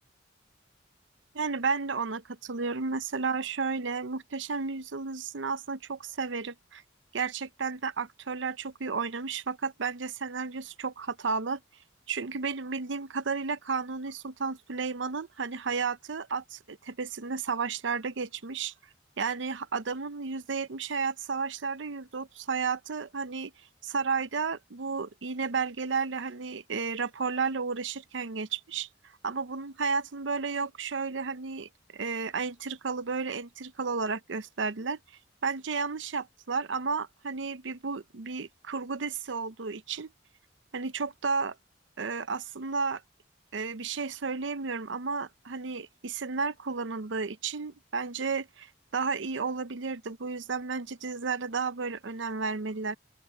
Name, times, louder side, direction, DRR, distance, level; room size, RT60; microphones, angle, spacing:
voice 1, 1.3-6.8 7.1-11.6 12.1-18.7 19.2-23.5 23.8-28.9 29.2-35.0 35.4-40.1 40.7-41.5 42.0-43.0 43.5-52.9, right 5 dB, 80° right, 0.7 m, -32 dB
open air
head